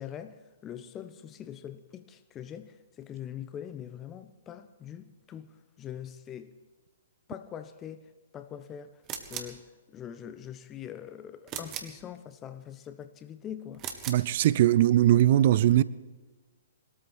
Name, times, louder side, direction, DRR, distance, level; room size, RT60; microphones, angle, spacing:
voice 1, 0.0-6.6 7.3-8.1 8.3-9.0 9.3-13.8, left 9 dB, 20° left, 0.9 m, -43 dB
sound 1, 9.0-9.6 11.5-12.0 13.7-14.3, right 8 dB, 25° right, 1.8 m, -38 dB
voice 2, 14.1-15.8, right 12 dB, 45° right, 0.6 m, -21 dB
21.0 x 13.5 x 4.5 m
figure-of-eight pair, 120°, 0 cm